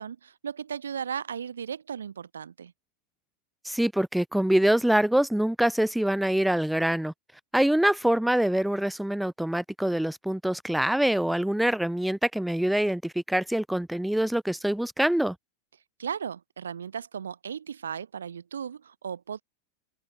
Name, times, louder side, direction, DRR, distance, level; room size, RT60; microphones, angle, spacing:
voice 1, 0.0-2.7 16.0-19.4, right 7 dB, 70° right, 2.1 m, -36 dB
voice 2, 3.6-7.1 7.5-15.4, right 1 dB, ahead, 0.5 m, -25 dB
open air
figure-of-eight pair, 90°, 0 cm